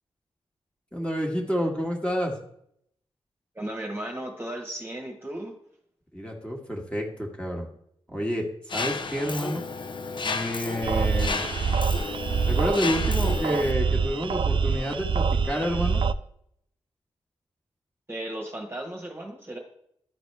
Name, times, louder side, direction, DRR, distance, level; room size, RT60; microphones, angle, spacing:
voice 1, 0.9-2.3 6.1-7.7 8.1-8.5 8.7-9.6 10.2-11.5 12.5-16.0, equal, 10° left, 0 dB, 1.7 m, -29 dB
voice 2, 3.5-5.5 18.1-19.6, right 1 dB, 20° right, 1 dB, 1.3 m, -35 dB
Mechanisms, 8.7-13.7, left 4 dB, 50° left, 0.6 m, -32 dB
sound 1, 10.8-16.1, right 5 dB, 50° right, 0.4 m, -25 dB
11.5 x 4.2 x 3.3 m, 0.71 s
cardioid pair, 80°, 11 cm